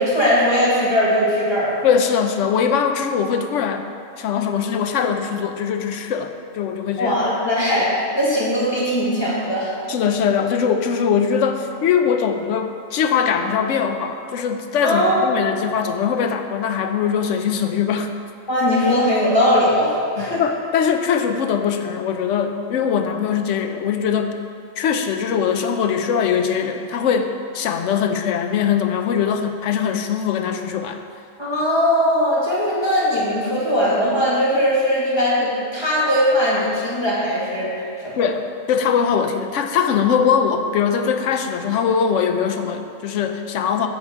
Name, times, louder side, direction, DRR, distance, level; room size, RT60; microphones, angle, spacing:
voice 1, 0.0-1.8 7.0-9.7 14.8-15.2 18.5-20.4 31.4-37.7 38.0-38.2, equal, 20° left, -8 dB, 2.0 m, -19 dB
voice 2, 1.8-3.9 4.2-7.2 9.9-18.1 20.2-24.4 24.8-31.0 38.2-38.4 38.7-43.9, left 7 dB, 70° left, 6 dB, 0.9 m, -21 dB
9.5 x 6.4 x 3.5 m, 2.3 s
omnidirectional pair, 1.4 m